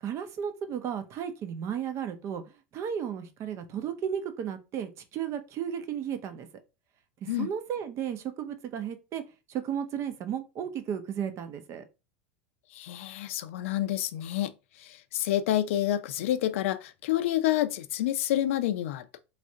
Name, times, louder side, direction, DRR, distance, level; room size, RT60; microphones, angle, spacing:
voice 1, 0.0-2.4 2.7-6.5 7.2-9.2 9.5-11.8, right 8 dB, 45° right, 0.6 m, -34 dB
voice 2, 12.7-14.5 14.8-19.2, left 13 dB, 75° left, 0.4 m, -28 dB
3.2 x 2.5 x 2.7 m
supercardioid pair, 110°, 7 cm